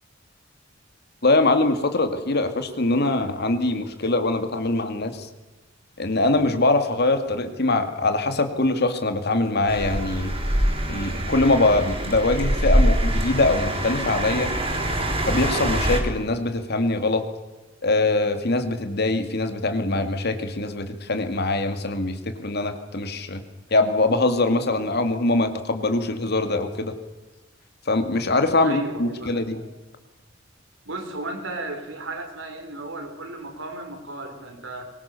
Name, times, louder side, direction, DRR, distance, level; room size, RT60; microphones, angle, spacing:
voice 1, 1.2-5.3 6.0-10.3 10.9-14.5 15.3-17.2 17.8-23.4 23.7-26.9 27.9-29.6, left 2 dB, 55° left, 8 dB, 2.3 m, -23 dB
sound 1, 9.7-16.0, right 1 dB, 30° right, 4.9 m, -24 dB
voice 2, 28.6-29.7 30.8-34.9, right 2 dB, 80° right, 4 dB, 5.1 m, -34 dB
23.0 x 20.5 x 7.0 m, 1.1 s
head